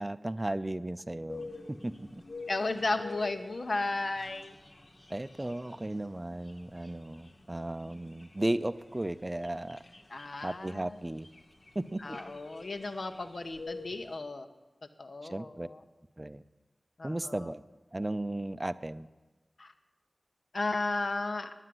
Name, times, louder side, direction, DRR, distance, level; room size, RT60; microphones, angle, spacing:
voice 1, 0.0-2.2 5.1-9.8 10.4-11.3 11.8-12.2 15.2-15.7 16.2-16.4 17.0-17.6 17.9-19.1, right 1 dB, 25° right, 14 dB, 0.5 m, -35 dB
sound 1, 1.3-14.1, left 3 dB, 55° left, 1.2 m, -48 dB
voice 2, 2.5-4.5 10.1-11.0 12.0-14.5 15.0-15.8 17.0-17.5 19.6-19.7 20.5-21.5, left 2 dB, 70° left, 8 dB, 0.8 m, -34 dB
9.9 x 9.6 x 7.7 m, 1.2 s
wide cardioid pair, 55°, 0 cm